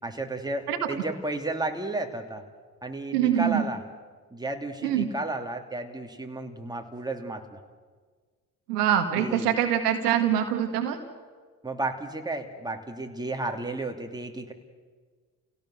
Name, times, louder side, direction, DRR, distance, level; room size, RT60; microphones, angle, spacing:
voice 1, 0.0-2.4 2.8-3.8 4.3-7.6 9.1-9.5 11.6-14.5, right 2 dB, 10° right, 3 dB, 2.8 m, -33 dB
voice 2, 3.1-3.6 4.8-5.1 8.7-11.0, right 10 dB, 85° right, 6 dB, 1.8 m, -24 dB
28.5 x 17.0 x 7.7 m, 1.5 s
hypercardioid pair, 50°, 46 cm